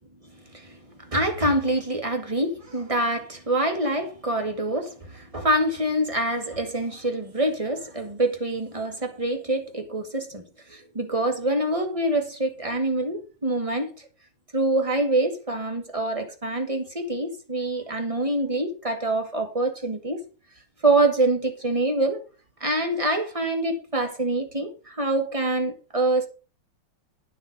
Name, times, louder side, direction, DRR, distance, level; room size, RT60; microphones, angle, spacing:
voice 1, 1.1-10.4 10.7-13.9 14.5-20.2 20.8-22.2 22.6-26.3, right 2 dB, 15° right, 1.6 m, -25 dB
10.0 x 6.5 x 5.4 m
omnidirectional pair, 2.4 m